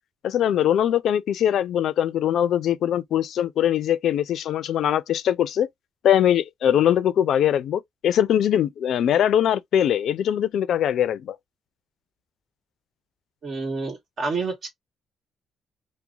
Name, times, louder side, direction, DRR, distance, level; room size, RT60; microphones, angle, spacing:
voice 1, 0.2-5.7 6.0-11.4, left 10 dB, 70° left, 0.4 m, -22 dB
voice 2, 13.4-14.7, right 4 dB, 55° right, 1.4 m, -29 dB
2.8 x 2.1 x 2.3 m
cardioid pair, 90°, 0 cm